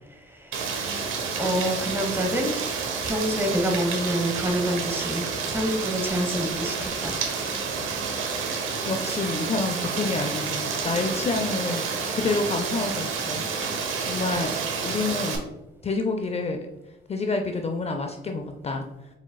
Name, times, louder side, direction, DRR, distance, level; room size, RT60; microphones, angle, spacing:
voice 1, 0.1-1.1 1.4-2.5 3.0-7.2, equal, 10° right, 3 dB, 1.0 m, -27 dB
Rain, 0.5-15.4, right 5 dB, 85° right, 0.8 m, -29 dB
voice 2, 8.9-13.4 14.0-14.6 14.8-15.5 15.8-16.7 17.1-18.8, left 3 dB, 30° left, 4 dB, 0.4 m, -28 dB
4.9 x 4.0 x 2.2 m, 0.98 s
cardioid pair, 90°, 20 cm